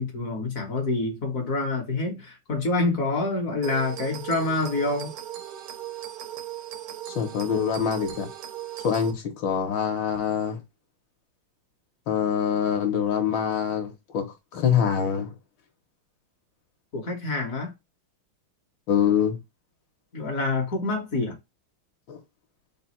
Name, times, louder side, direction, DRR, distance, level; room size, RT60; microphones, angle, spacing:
voice 1, 0.0-5.1 16.9-17.7 20.1-21.4, left 2 dB, 55° left, 1.1 m, -27 dB
sound 1, 3.6-9.1, right 11 dB, 90° right, 1.6 m, -38 dB
voice 2, 7.1-8.3 8.8-10.6 12.1-14.3 14.5-15.3 18.9-19.4 22.1-22.2, left 8 dB, 70° left, 1.5 m, -25 dB
4.0 x 2.2 x 4.1 m
omnidirectional pair, 2.3 m